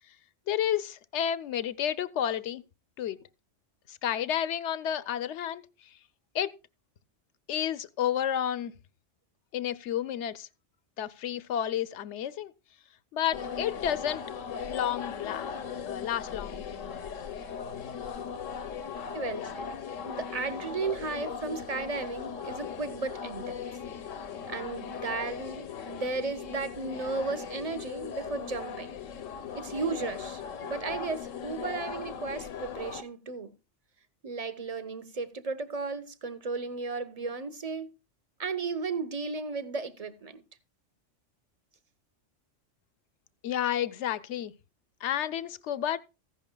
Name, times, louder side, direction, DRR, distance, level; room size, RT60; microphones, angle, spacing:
voice 1, 0.5-2.6 3.0-3.2 3.9-5.6 6.3-6.5 7.5-8.7 9.5-10.5 11.0-12.5 13.1-14.2 14.7-15.6 15.9-16.6 43.4-44.5 45.0-46.0, left 10 dB, 70° left, 1.0 m, -31 dB
sound 1, 13.3-33.0, left 6 dB, 90° left, 1.2 m, -38 dB
voice 2, 19.1-19.7 20.0-23.6 24.5-29.0 29.5-33.5 34.2-37.9 38.4-40.4, right 4 dB, 30° right, 1.0 m, -35 dB
15.0 x 11.0 x 2.2 m
omnidirectional pair, 1.3 m